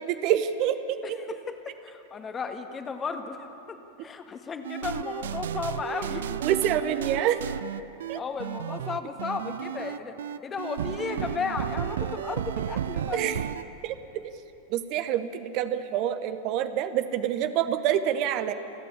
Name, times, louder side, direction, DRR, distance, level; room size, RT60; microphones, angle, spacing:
voice 1, 0.0-1.0 6.4-7.4 8.1-8.2 13.1-13.5 13.8-13.9 14.2-14.3 14.7-18.5, right 10 dB, 45° right, 10 dB, 1.0 m, -27 dB
voice 2, 1.0-1.6 1.8-6.2 8.1-10.1 10.4-13.4, left 5 dB, 25° left, 6 dB, 1.6 m, -34 dB
sound 1, 4.6-13.6, right 9 dB, 65° right, 0.5 m, -33 dB
28.0 x 9.5 x 9.8 m, 2.9 s
figure-of-eight pair, 85°, 0 cm